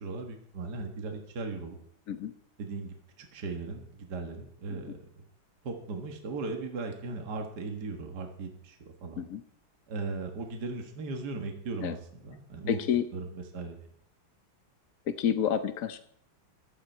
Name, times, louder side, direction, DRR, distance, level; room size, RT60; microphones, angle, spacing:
voice 1, 0.0-1.8 2.6-5.2 5.6-9.3 9.9-12.8 13.1-13.9, right 3 dB, 55° right, 3 dB, 2.1 m, -38 dB
voice 2, 12.7-13.0 15.1-16.0, left 8 dB, 55° left, 10 dB, 1.0 m, -29 dB
15.5 x 12.0 x 4.5 m, 0.71 s
omnidirectional pair, 2.1 m